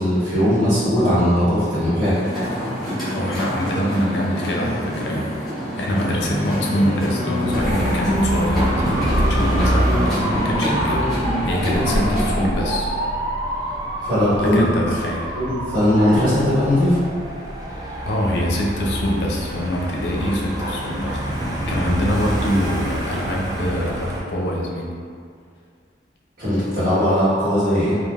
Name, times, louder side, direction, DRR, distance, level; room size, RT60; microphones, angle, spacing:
voice 1, 0.0-2.2 14.0-14.6 15.3-17.0 26.4-28.0, left 1 dB, 60° right, -13 dB, 1.4 m, -19 dB
sound 1, 2.1-12.3, equal, ahead, 0.9 m, -25 dB
voice 2, 3.1-5.3 5.8-12.9 14.4-15.3 18.1-21.3 21.7-25.0, equal, 65° left, -2 dB, 0.5 m, -24 dB
Dog / Motorcycle, 7.4-24.2, right 1 dB, 20° right, 0.3 m, -26 dB
3.3 x 2.3 x 2.3 m, 2.2 s
head